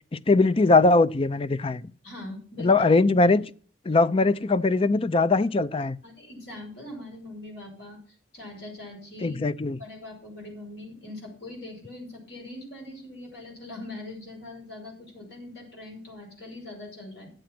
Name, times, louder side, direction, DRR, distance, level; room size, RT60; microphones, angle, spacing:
voice 1, 0.3-1.9 2.6-3.5 3.9-6.0 9.2-9.8, left 3 dB, 30° left, 0.5 m, -21 dB
voice 2, 2.0-3.0 6.0-8.0 8.3-9.4 9.8-17.3, left 2 dB, 75° left, 5.7 m, -42 dB
10.5 x 7.8 x 5.9 m
head